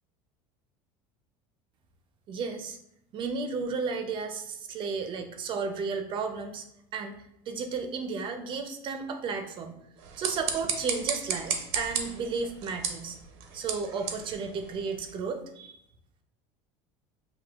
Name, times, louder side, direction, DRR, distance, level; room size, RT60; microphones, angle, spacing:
voice 1, 2.3-2.8 3.1-6.7 6.9-7.2 7.5-9.8 10.2-13.2 13.5-15.8, right 5 dB, 40° right, 7 dB, 0.5 m, -33 dB
sound 1, 10.0-15.2, right 7 dB, 85° right, 0.7 m, -35 dB
6.0 x 2.6 x 2.4 m, 0.75 s
supercardioid pair, 135°, 13 cm